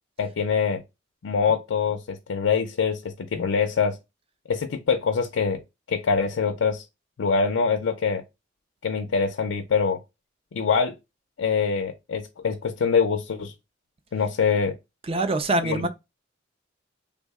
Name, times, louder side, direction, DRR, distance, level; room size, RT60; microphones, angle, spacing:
voice 1, 0.2-0.8 1.2-4.0 4.5-5.6 5.9-6.8 7.2-8.2 8.8-10.0 10.5-11.0 11.4-13.5 14.1-14.8 15.6-15.9, left 5 dB, 75° left, 0.4 m, -24 dB
voice 2, 15.1-15.9, right 2 dB, 30° right, 0.4 m, -24 dB
3.5 x 2.0 x 3.4 m
head